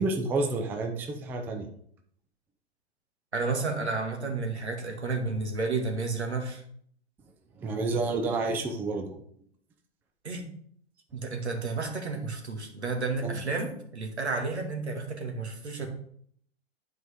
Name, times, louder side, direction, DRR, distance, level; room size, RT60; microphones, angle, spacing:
voice 1, 0.0-1.7 7.6-9.2 13.2-13.3, right 3 dB, 5° right, 4 dB, 0.4 m, -29 dB
voice 2, 3.3-6.6 10.2-10.5 11.1-15.9, right 3 dB, 75° right, 2 dB, 1.9 m, -31 dB
11.0 x 4.7 x 3.4 m, 0.64 s
figure-of-eight pair, 105°, 33 cm